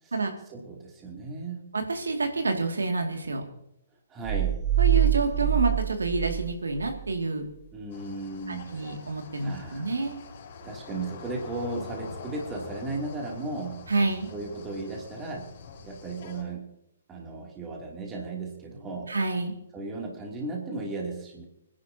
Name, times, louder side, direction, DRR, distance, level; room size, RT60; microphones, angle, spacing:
voice 1, 0.5-1.7 4.1-4.6 7.7-9.0 9.4-10.1 10.6-13.8 14.3-15.5 15.8-16.7 17.1-19.1 19.7-21.5, right 2 dB, 20° right, -1 dB, 2.9 m, -35 dB
voice 2, 1.7-3.4 4.8-7.4 8.5-10.2 13.9-14.3 19.1-19.5, right 3 dB, 80° right, 4 dB, 2.3 m, -28 dB
sound 1, 4.2-7.1, right 12 dB, 5° left, 4.3 m, -25 dB
sound 2, 7.9-16.4, left 5 dB, 50° left, 4.7 m, -45 dB
25.0 x 11.0 x 2.9 m, 0.81 s
figure-of-eight pair, 130°, 0 cm